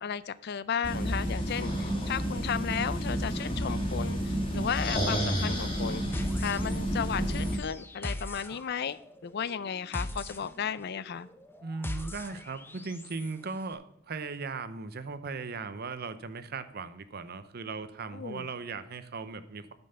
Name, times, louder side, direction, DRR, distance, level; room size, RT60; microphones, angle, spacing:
voice 1, 0.0-11.3 18.1-18.5, left 7 dB, 55° left, 17 dB, 0.4 m, -34 dB
sound 1, 0.8-7.6, equal, 25° left, 1.5 m, -30 dB
sound 2, 6.1-7.0 7.3-13.3, left 1 dB, 10° left, 0.6 m, -40 dB
voice 2, 11.6-19.7, right 4 dB, 50° right, 12 dB, 0.7 m, -38 dB
9.3 x 5.4 x 6.8 m, 0.70 s
head